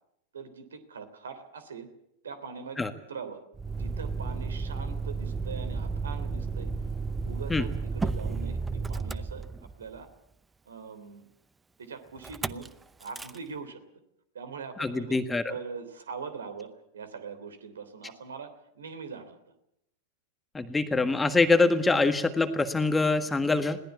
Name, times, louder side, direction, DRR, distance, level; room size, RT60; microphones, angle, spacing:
voice 1, 0.3-1.9 2.2-2.8 3.1-3.4 3.7-6.7 7.2-10.1 10.7-11.3 11.8-12.7 13.0-13.8 14.3-15.2 15.5-19.4, right 5 dB, 65° right, 11 dB, 3.2 m, -42 dB
Motor vehicle (road), 3.5-10.0 12.2-12.7 13.0-13.4, right 4 dB, 10° right, 0.7 m, -33 dB
voice 2, 14.8-15.5 20.5-23.8, left 3 dB, 10° left, 10 dB, 1.5 m, -24 dB
21.0 x 18.0 x 8.3 m, 0.79 s
figure-of-eight pair, 90°, 0 cm